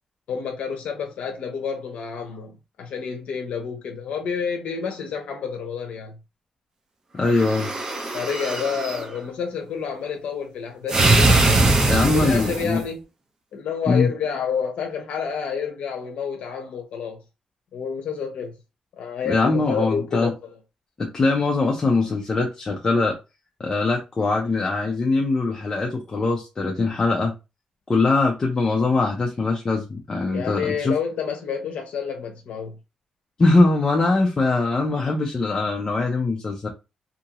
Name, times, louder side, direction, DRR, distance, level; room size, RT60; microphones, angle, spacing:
voice 1, 0.3-6.2 8.1-11.5 12.1-13.0 13.5-17.2 17.7-18.5 19.0-20.3 30.3-32.8, left 6 dB, 80° left, 0.7 m, -29 dB
voice 2, 7.1-7.7 11.9-12.8 13.9-14.1 19.3-20.3 21.0-23.2 23.6-27.3 27.9-30.9 33.4-36.7, left 3 dB, 25° left, 0.5 m, -22 dB
sound 1, 7.3-9.0 10.9-12.8, right 2 dB, 30° right, 0.6 m, -21 dB
2.7 x 2.5 x 2.9 m
wide cardioid pair, 150°, 2 cm